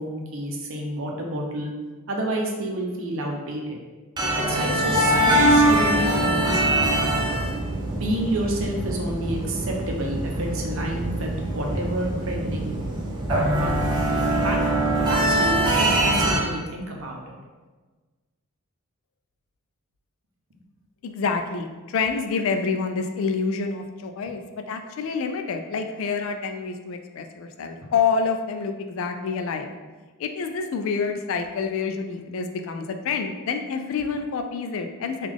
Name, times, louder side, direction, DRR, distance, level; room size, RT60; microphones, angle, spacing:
voice 1, 0.0-1.7 2.1-3.8 4.4-7.4 7.9-12.8 13.3-13.8 14.4-14.6 15.1-17.4 27.8-27.9, right 1 dB, 60° right, 0 dB, 0.6 m, -30 dB
sound 1, 4.2-16.4, right 1 dB, 20° right, 0.4 m, -23 dB
voice 2, 21.0-29.7 30.2-35.3, left 5 dB, 65° left, 6 dB, 0.3 m, -27 dB
3.5 x 2.4 x 3.4 m, 1.3 s
head